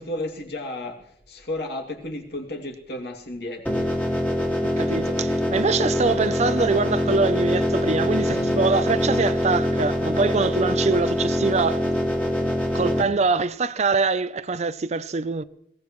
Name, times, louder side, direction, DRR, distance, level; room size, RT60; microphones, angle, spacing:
voice 1, 0.0-3.9, left 1 dB, 65° left, 2.6 m, -33 dB
sound 1, 3.7-13.0, left 1 dB, 10° left, 2.1 m, -24 dB
voice 2, 4.6-11.8 12.7-15.4, right 4 dB, 40° right, 0.5 m, -24 dB
22.0 x 17.5 x 3.1 m
head